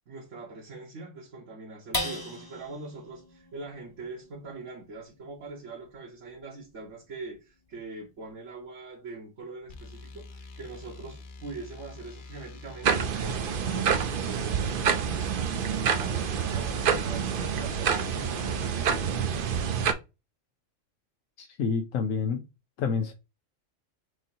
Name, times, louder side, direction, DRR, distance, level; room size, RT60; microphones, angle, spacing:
voice 1, 0.1-13.5 13.7-19.0, right 3 dB, 75° right, 1.5 m, -43 dB
sound 1, 1.9-8.6 9.1-9.2 9.6-10.1, left 1 dB, 20° left, 1.0 m, -41 dB
sound 2, 9.7-18.8, left 3 dB, 50° left, 0.7 m, -46 dB
sound 3, 12.8-19.9, right 7 dB, 55° right, 0.7 m, -27 dB
voice 2, 21.4-22.4 22.8-23.1, left 5 dB, 85° left, 1.1 m, -28 dB
6.2 x 2.8 x 2.7 m
omnidirectional pair, 1.3 m